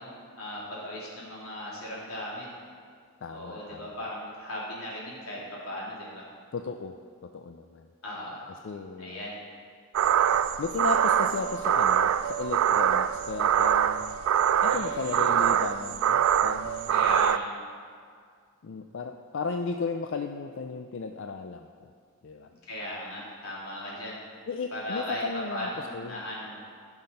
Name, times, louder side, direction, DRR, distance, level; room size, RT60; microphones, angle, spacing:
voice 1, 0.0-2.5 3.3-6.2 8.0-8.4 9.0-9.4 14.7-15.3 16.9-17.5 22.5-24.2 24.7-26.6, left 1 dB, 85° left, -6 dB, 3.3 m, -37 dB
voice 2, 3.2-3.9 6.5-7.0 7.2-7.9 8.5-9.2 10.6-14.2 14.6-17.0 18.6-21.9 22.2-22.5 24.5-26.2, left 4 dB, 60° left, 5 dB, 0.4 m, -35 dB
sound 1, 9.9-17.4, right 9 dB, 75° right, 0.3 m, -24 dB
15.0 x 5.9 x 5.3 m, 2.1 s
head